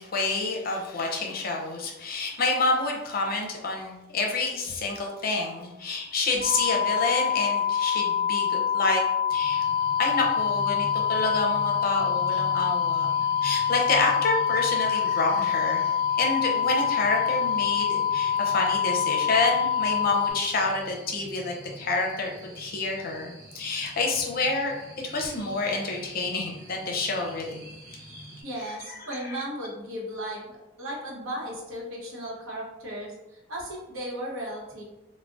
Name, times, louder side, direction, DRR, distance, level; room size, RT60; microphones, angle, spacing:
voice 1, 0.0-9.0 9.3-9.6 10.0-24.7 25.0-27.6 29.1-29.4, left 3 dB, 45° left, 0 dB, 0.5 m, -28 dB
sound 1, 6.4-20.3, left 8 dB, 40° right, 0.5 m, -25 dB
sound 2, 9.3-28.4, equal, 60° right, 1.0 m, -45 dB
voice 2, 28.4-34.8, equal, 85° right, -2 dB, 0.8 m, -36 dB
3.6 x 2.0 x 2.4 m, 0.96 s
head